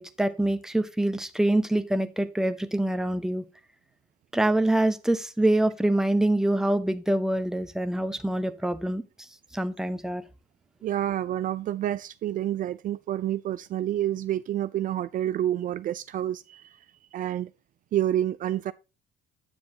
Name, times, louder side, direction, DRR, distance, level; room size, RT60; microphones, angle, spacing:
voice 1, 0.0-3.4 4.3-9.0 9.5-10.2, right 1 dB, 5° right, 0.9 m, -25 dB
voice 2, 10.8-16.8 17.1-17.5 17.9-18.7, right 12 dB, 50° right, 0.4 m, -28 dB
9.7 x 6.9 x 2.8 m
cardioid pair, 110°, 17 cm